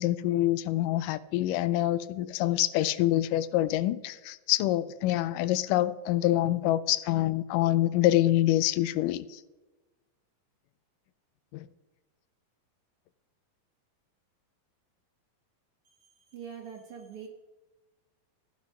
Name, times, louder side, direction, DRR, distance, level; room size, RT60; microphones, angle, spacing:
voice 1, 0.0-9.4 11.5-11.7, left 14 dB, 85° left, 16 dB, 2.2 m, -26 dB
voice 2, 15.8-17.3, right 7 dB, 65° right, 2 dB, 1.4 m, -44 dB
14.0 x 6.3 x 5.6 m, 1.1 s
omnidirectional pair, 3.7 m